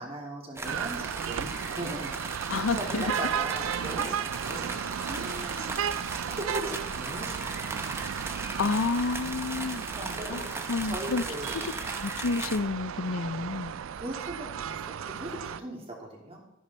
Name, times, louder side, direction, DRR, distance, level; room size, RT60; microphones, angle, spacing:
voice 1, 0.0-2.1 2.7-5.8 6.3-8.0 9.9-10.4 10.8-11.5 13.9-16.4, right 1 dB, 30° right, 2.7 m, -39 dB
sound 1, 0.6-12.6, right 2 dB, 15° right, 0.9 m, -38 dB
sound 2, 0.6-15.6, right 8 dB, 85° right, 0.4 m, -35 dB
voice 2, 2.5-3.1 8.6-9.8 10.3-11.2 11.5-11.7 12.0-13.7, left 4 dB, 85° left, 0.5 m, -30 dB
13.5 x 10.5 x 4.2 m
head